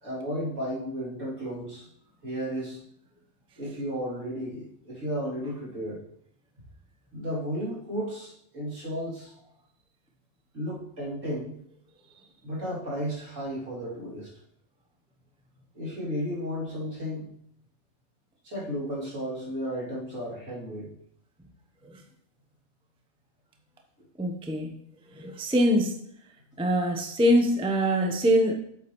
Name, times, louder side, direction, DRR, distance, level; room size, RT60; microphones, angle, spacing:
voice 1, 0.0-1.9 2.2-2.8 3.6-6.0 7.1-9.3 10.5-11.6 12.4-14.3 15.7-17.3 18.4-20.9, equal, 60° right, -6 dB, 3.1 m, -33 dB
voice 2, 24.2-24.8 25.2-26.0 26.6-28.5, equal, 5° right, 3 dB, 0.5 m, -23 dB
8.0 x 7.8 x 3.0 m, 0.69 s
omnidirectional pair, 1.5 m